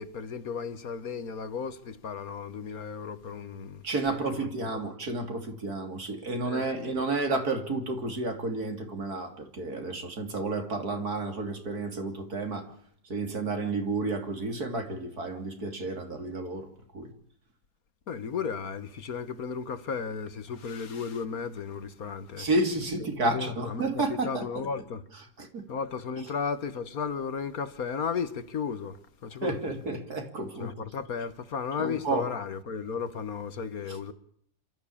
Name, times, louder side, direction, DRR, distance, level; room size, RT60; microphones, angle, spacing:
voice 1, 0.0-3.8 4.4-4.5 6.4-7.0 18.1-22.5 23.0-25.0 25.7-29.7 30.6-34.1, left 6 dB, 60° left, 1.7 m, -34 dB
voice 2, 3.8-12.7 13.1-16.7 16.9-17.1 22.4-24.7 25.4-25.7 29.4-30.7 31.8-32.3, right 2 dB, 65° right, 3.6 m, -31 dB
27.0 x 13.5 x 8.6 m
omnidirectional pair, 1.8 m